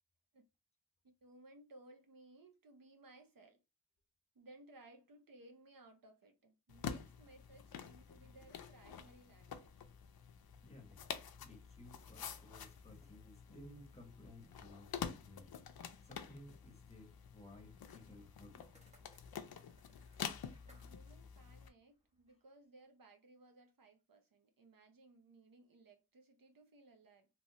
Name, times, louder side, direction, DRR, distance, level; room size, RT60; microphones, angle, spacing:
voice 1, 1.2-3.6 4.4-9.7 20.7-27.3, right 2 dB, 70° right, 0.8 m, -61 dB
sound 1, 6.7-21.7, left 7 dB, 85° left, 0.5 m, -48 dB
voice 2, 10.6-11.0 11.4-15.5 16.0-18.7, left 1 dB, 20° left, 1.0 m, -57 dB
sound 2, 18.3-22.5, equal, 20° right, 1.0 m, -71 dB
3.0 x 3.0 x 2.8 m
wide cardioid pair, 105°, 35 cm